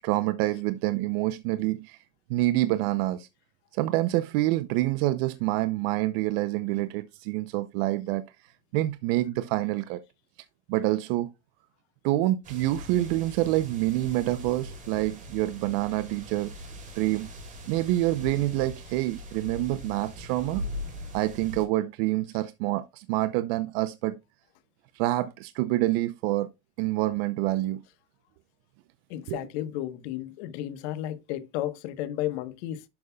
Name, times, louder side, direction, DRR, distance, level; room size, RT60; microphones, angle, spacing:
voice 1, 0.0-2.0 2.3-3.3 3.7-8.2 8.7-10.0 10.7-11.3 12.0-16.5 17.0-17.3 17.7-20.6 21.1-24.2 24.9-26.5 26.8-27.8 29.3-29.4, right 17 dB, 55° right, 0.7 m, -27 dB
sound 1, 12.4-21.7, equal, 20° right, 2.8 m, -41 dB
voice 2, 29.1-32.8, left 13 dB, 60° left, 1.2 m, -33 dB
11.5 x 5.4 x 2.3 m
supercardioid pair, 145°, 36 cm